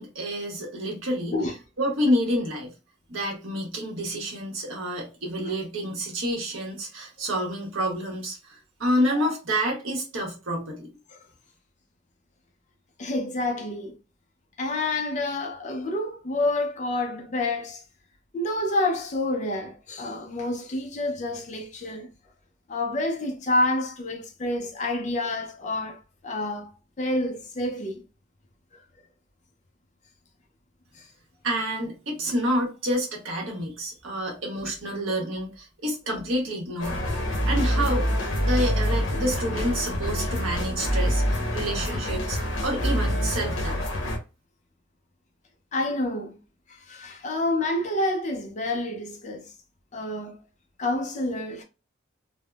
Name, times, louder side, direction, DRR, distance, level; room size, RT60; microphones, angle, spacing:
voice 1, 0.0-1.4 1.8-2.7 3.1-10.9 31.4-37.0 37.5-38.1 38.4-43.8, equal, 90° right, 0.9 m, -28 dB
voice 2, 13.0-14.0 14.6-17.8 18.3-22.1 22.7-26.7 27.0-28.0 28.7-28.8 30.9-31.1 45.7-46.4 46.7-49.5 49.9-50.4 50.8-51.6, left 2 dB, 35° left, 0.4 m, -28 dB
sound 1, 36.8-44.2, equal, 70° left, 0.9 m, -26 dB
3.4 x 2.0 x 2.2 m
head